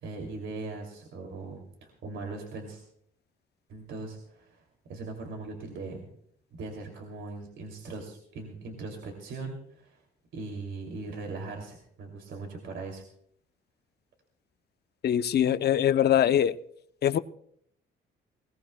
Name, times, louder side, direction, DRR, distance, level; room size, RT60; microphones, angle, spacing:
voice 1, 0.0-2.8 3.7-4.6 4.9-6.0 6.5-10.0 10.3-13.0, right 3 dB, 75° right, 2.6 m, -40 dB
voice 2, 15.0-16.6 17.0-17.2, left 10 dB, 55° left, 0.7 m, -23 dB
20.5 x 19.0 x 2.2 m
cardioid pair, 90°, 20 cm